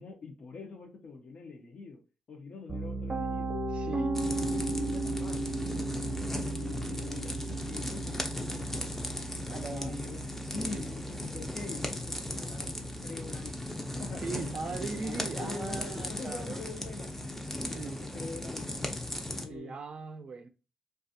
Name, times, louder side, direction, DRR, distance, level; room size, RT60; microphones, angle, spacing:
voice 1, 0.0-2.0 2.3-3.5 4.4-5.9 6.3-7.4 7.7-8.9 9.5-10.2 10.5-12.7 13.0-13.7 14.0-14.2 14.7-17.1 17.5-18.8 19.4-19.8, left 3 dB, 65° left, 0.7 m, -44 dB
Piano, 2.7-14.6, right 2 dB, 35° right, 0.8 m, -37 dB
voice 2, 3.7-4.2 9.5-10.0 10.7-10.9 14.2-16.6 17.8-18.0 19.5-20.5, right 4 dB, 55° right, 0.4 m, -39 dB
sound 1, 4.1-19.4, left 1 dB, 15° left, 0.5 m, -37 dB
2.4 x 2.3 x 2.6 m
cardioid pair, 60°, 2 cm